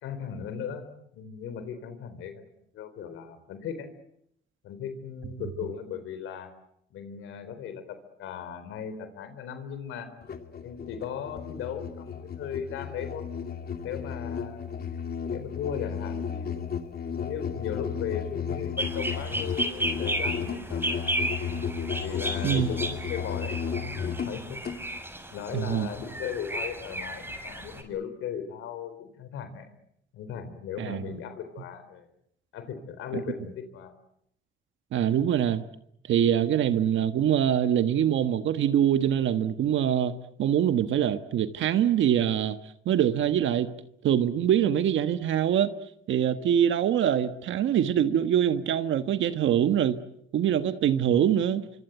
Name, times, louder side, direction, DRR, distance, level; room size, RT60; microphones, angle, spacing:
voice 1, 0.0-3.9 4.6-6.5 6.9-10.1 10.6-13.3 13.8-14.9 15.2-16.6 17.2-21.2 22.0-24.6 25.3-29.7 30.1-32.1 32.5-33.9, left 8 dB, 90° left, 4.0 m, -37 dB
Musical instrument, 10.2-24.8, left 6 dB, 50° left, 2.6 m, -34 dB
sound 1, 18.8-27.8, right 1 dB, 10° right, 6.6 m, -34 dB
voice 2, 25.5-25.9 30.8-31.1 34.9-35.6 36.1-42.6 42.8-43.7 44.0-45.7 46.1-50.0 50.3-51.6, right 10 dB, 75° right, 1.3 m, -24 dB
26.0 x 25.0 x 8.1 m
cardioid pair, 90°, 20 cm